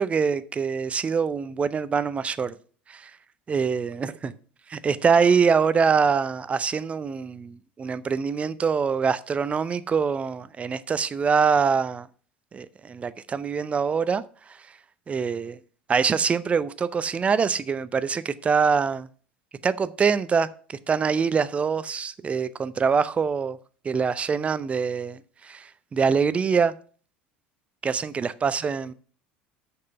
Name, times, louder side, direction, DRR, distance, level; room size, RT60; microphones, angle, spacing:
voice 1, 0.0-2.5 2.9-3.1 3.5-4.3 4.7-12.1 12.5-14.2 15.1-15.6 15.9-19.1 19.6-23.6 23.8-26.7 27.8-28.9, right 6 dB, 25° right, 0.5 m, -24 dB
6.6 x 5.5 x 6.7 m
figure-of-eight pair, 70°, 5 cm